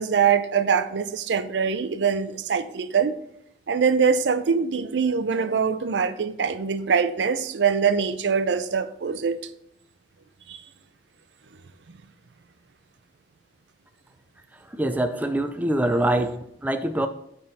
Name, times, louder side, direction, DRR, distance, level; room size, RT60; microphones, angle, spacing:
voice 1, 0.0-3.1 3.7-9.4 10.5-10.6, right 6 dB, 85° right, 0.5 m, -23 dB
voice 2, 14.7-17.1, right 1 dB, 10° right, 0.3 m, -24 dB
8.7 x 3.6 x 4.1 m
head